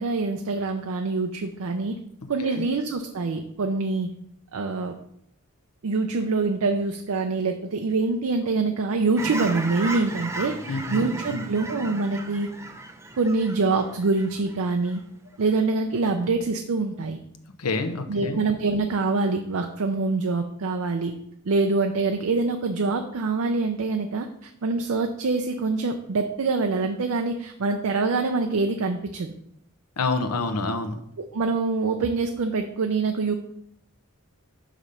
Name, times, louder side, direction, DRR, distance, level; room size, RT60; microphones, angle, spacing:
voice 1, 0.0-2.0 2.3-4.1 4.5-5.0 5.8-12.5 13.2-15.0 15.4-17.2 18.1-21.1 21.4-29.3 31.2-33.3, right 3 dB, 70° right, 5 dB, 0.5 m, -25 dB
Fowl / Chirp tweet, 9.2-15.0 15.4-15.6, right 2 dB, 10° right, 0.5 m, -36 dB
voice 2, 10.7-11.4 17.6-18.4 30.0-31.0, left 3 dB, 85° left, 7 dB, 0.8 m, -28 dB
5.2 x 5.0 x 5.6 m, 0.73 s
head